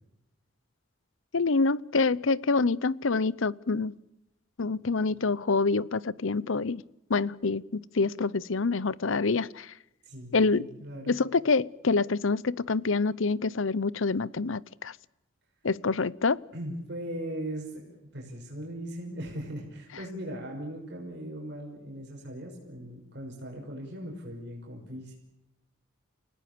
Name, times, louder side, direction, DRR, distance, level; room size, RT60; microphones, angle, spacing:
voice 1, 1.3-4.0 4.6-6.8 7.1-9.7 10.3-10.7 11.1-14.9 15.6-16.4, left 4 dB, 75° left, 21 dB, 0.8 m, -26 dB
voice 2, 10.0-11.2 16.5-25.2, right 1 dB, 55° right, 0 dB, 6.1 m, -39 dB
30.0 x 18.0 x 6.9 m, 0.86 s
head